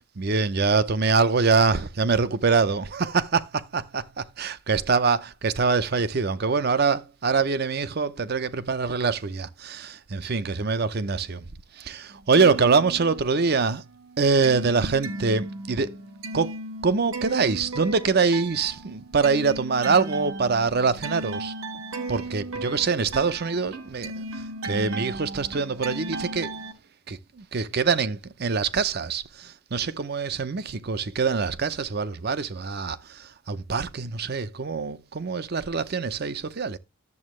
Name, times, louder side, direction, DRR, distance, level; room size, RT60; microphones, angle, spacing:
voice 1, 0.2-11.5 11.7-13.8 14.2-16.0 16.3-16.6 16.8-21.5 22.1-26.5 27.1-36.8, right 4 dB, 45° right, 0.6 m, -24 dB
sound 1, 12.1-13.5 13.9-26.7, right 2 dB, 75° right, 1.4 m, -36 dB
11.0 x 7.4 x 3.1 m
head